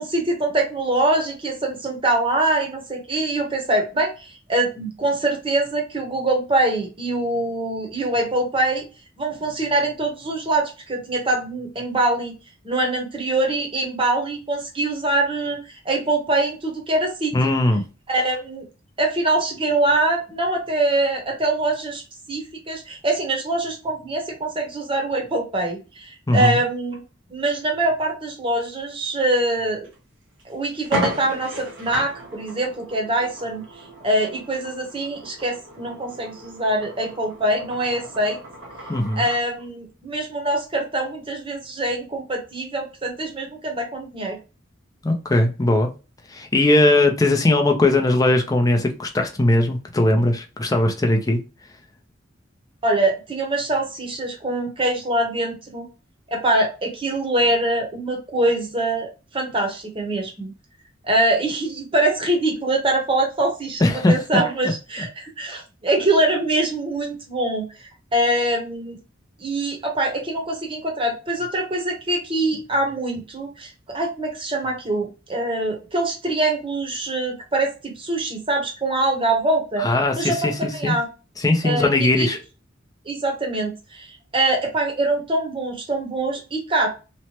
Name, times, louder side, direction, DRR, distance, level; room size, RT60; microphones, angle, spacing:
voice 1, 0.0-8.9 9.2-12.3 12.6-17.6 18.1-18.7 19.0-22.0 22.3-27.0 27.3-29.9 30.4-33.7 34.0-38.4 39.2-44.4 52.8-55.9 56.3-60.5 61.0-69.0 69.4-79.9 80.1-81.1 81.6-82.4 83.0-86.9, right 2 dB, 30° right, 1 dB, 0.8 m, -24 dB
voice 2, 17.3-17.8 26.3-26.6 38.9-39.2 45.0-45.9 46.3-51.4 63.8-64.4 79.8-80.5 80.8-80.9 81.4-82.4, left 2 dB, 20° left, 3 dB, 0.5 m, -19 dB
sound 1, 29.8-30.0 30.4-30.5 30.8-39.5, right 1 dB, 80° right, 1.1 m, -34 dB
3.1 x 2.1 x 2.8 m, 0.31 s
head